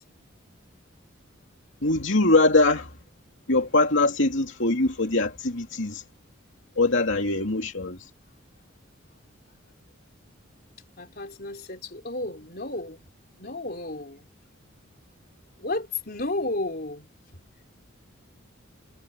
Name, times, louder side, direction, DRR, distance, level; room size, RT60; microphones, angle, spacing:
voice 1, 1.8-2.9 3.5-6.0 6.8-8.0, left 2 dB, 65° left, 2.7 m, -22 dB
voice 2, 11.0-13.0 13.4-14.3 15.6-17.1, left 2 dB, 45° left, 4.0 m, -32 dB
head